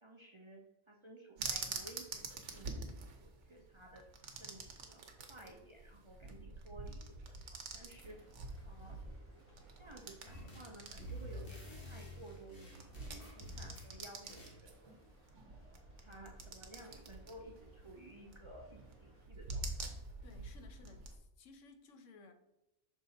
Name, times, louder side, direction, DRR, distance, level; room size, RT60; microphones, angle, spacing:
voice 1, 0.0-4.0 4.4-8.2 8.7-9.0 9.8-15.0 16.0-20.0, right 1 dB, 35° right, 0.5 m, -55 dB
sound 1, 1.4-21.2, right 3 dB, 75° right, 1.2 m, -47 dB
sound 2, 7.9-19.3, equal, 10° left, 1.8 m, -67 dB
sound 3, 10.3-10.7 11.0-13.9 14.3-14.6, equal, 50° left, 1.8 m, -49 dB
voice 2, 20.2-22.3, left 3 dB, 85° left, 1.1 m, -58 dB
6.0 x 4.1 x 4.0 m
omnidirectional pair, 1.2 m